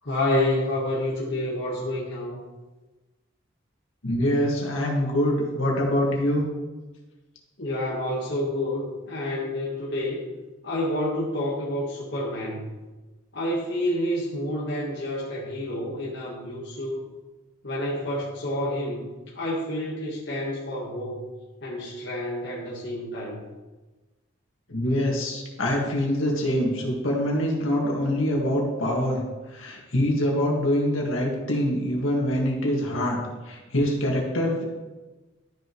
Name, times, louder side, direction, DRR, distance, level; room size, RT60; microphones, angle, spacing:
voice 1, 0.0-2.4 7.6-10.3 10.6-12.6 13.3-17.0 17.6-19.1 19.3-21.3 21.6-23.4, left 1 dB, 60° left, -5 dB, 1.4 m, -29 dB
voice 2, 4.0-6.4 24.7-29.2 29.5-33.2 33.5-34.6, left 1 dB, 80° left, -1 dB, 1.9 m, -24 dB
12.5 x 5.9 x 3.1 m, 1.2 s
head